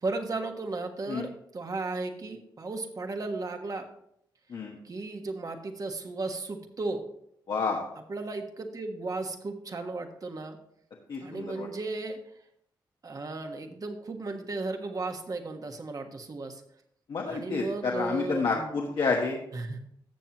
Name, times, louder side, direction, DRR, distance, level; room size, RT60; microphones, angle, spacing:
voice 1, 0.0-3.9 4.8-7.0 8.1-10.6 11.2-12.2 13.0-16.6 17.3-18.8 19.5-19.9, right 3 dB, 45° right, 5 dB, 1.5 m, -35 dB
voice 2, 7.5-7.8 11.1-11.7 17.1-19.4, left 4 dB, 70° left, -1 dB, 1.3 m, -29 dB
13.0 x 7.3 x 3.0 m, 0.71 s
cardioid pair, 60°, 8 cm